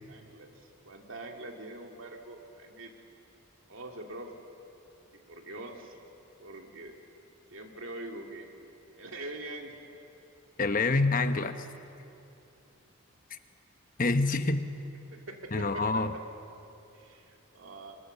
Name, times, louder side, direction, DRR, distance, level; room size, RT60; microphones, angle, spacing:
voice 1, 0.1-2.9 3.7-4.3 5.1-6.0 6.4-7.0 7.5-8.5 8.9-9.8 11.4-11.5 15.1-16.2 16.9-18.0, right 2 dB, 65° right, 2 dB, 2.6 m, -44 dB
voice 2, 10.6-11.5 13.3-13.4 14.0-14.7 15.5-16.1, left 3 dB, 40° left, 9 dB, 1.1 m, -26 dB
29.5 x 24.5 x 6.8 m, 2.8 s
head